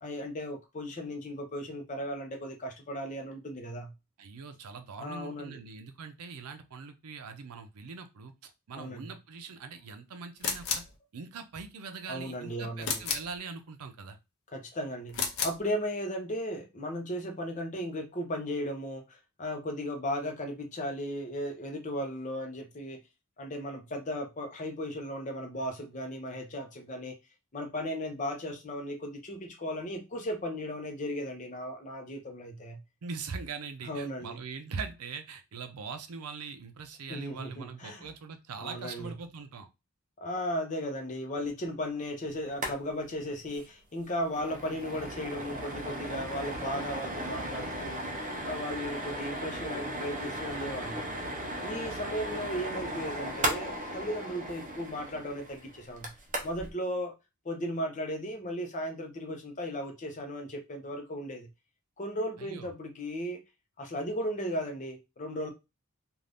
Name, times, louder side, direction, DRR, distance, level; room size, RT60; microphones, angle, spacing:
voice 1, 0.0-3.9 5.0-5.6 8.7-9.1 12.1-13.0 14.5-23.0 23.4-27.1 27.5-32.8 33.8-34.4 37.1-38.0 38.6-39.1 40.2-48.0 48.4-51.0 51.6-56.1 56.4-57.1 57.4-61.5 62.0-63.4 63.8-65.5, equal, 35° left, 0.7 m, -36 dB
voice 2, 4.2-10.8 11.1-14.2 33.0-39.7 62.4-62.7, right 5 dB, 85° right, 0.5 m, -42 dB
sound 1, 10.4-11.0 12.8-13.4 15.1-15.6, left 6 dB, 70° left, 0.6 m, -32 dB
sound 2, 42.5-42.8 43.0-43.1 43.5-43.6 44.0-56.7, right 1 dB, 35° right, 0.6 m, -36 dB
2.6 x 2.4 x 3.4 m
head